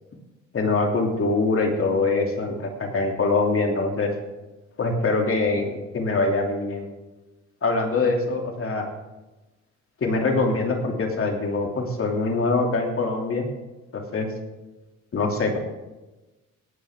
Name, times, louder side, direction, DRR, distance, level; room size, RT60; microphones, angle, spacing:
voice 1, 0.5-4.1 4.8-6.9 7.6-8.9 10.0-13.5 13.9-14.3 15.1-15.6, left 3 dB, 45° left, 1 dB, 2.9 m, -23 dB
18.5 x 9.4 x 3.7 m, 1.1 s
cardioid pair, 90°, 30 cm